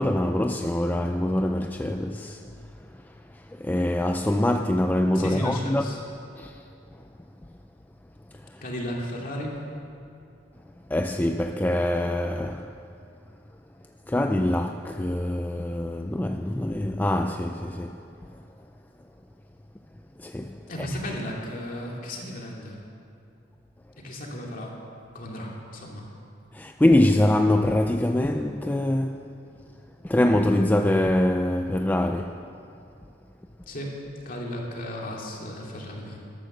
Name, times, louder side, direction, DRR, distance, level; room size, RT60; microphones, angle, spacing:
voice 1, 0.0-2.5 3.3-5.9 6.4-6.6 8.5-8.6 10.9-12.7 14.1-18.1 20.2-21.0 26.5-29.3 30.0-32.4, left 1 dB, 10° left, 0.3 m, -24 dB
voice 2, 5.1-6.0 8.6-9.6 20.7-22.8 24.0-24.7 25.1-26.1 33.7-34.0 34.3-36.2, equal, 45° left, 2.5 m, -34 dB
13.5 x 12.5 x 6.6 m
head